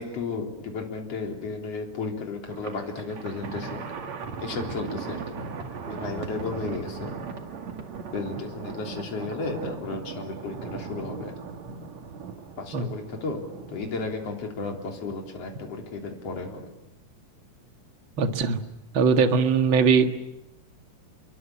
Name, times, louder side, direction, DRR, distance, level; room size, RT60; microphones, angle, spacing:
voice 1, 0.0-3.9 4.4-5.4 5.9-7.1 8.1-11.3 12.6-13.4 13.7-16.7, left 4 dB, 55° left, 2 dB, 4.5 m, -33 dB
Thunder, 2.5-14.3, right 5 dB, 65° right, 3.4 m, -38 dB
voice 2, 18.2-18.6 18.9-20.1, right 5 dB, 45° right, 6 dB, 2.3 m, -20 dB
29.0 x 22.5 x 8.6 m, 0.90 s
omnidirectional pair, 3.4 m